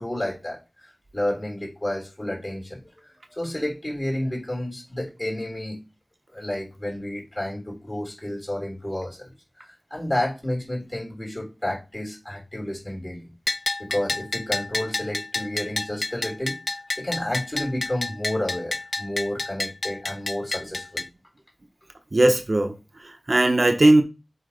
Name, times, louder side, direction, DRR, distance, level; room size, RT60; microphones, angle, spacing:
voice 1, 0.0-2.8 3.3-5.8 6.3-9.3 9.6-13.3 13.8-21.1, left 1 dB, 35° left, 3.5 m, -31 dB
Bell, 13.5-21.1, left 2 dB, 55° left, 0.4 m, -30 dB
voice 2, 22.1-24.0, right 1 dB, 55° right, 0.9 m, -19 dB
7.8 x 3.0 x 5.0 m
wide cardioid pair, 40°, 0 cm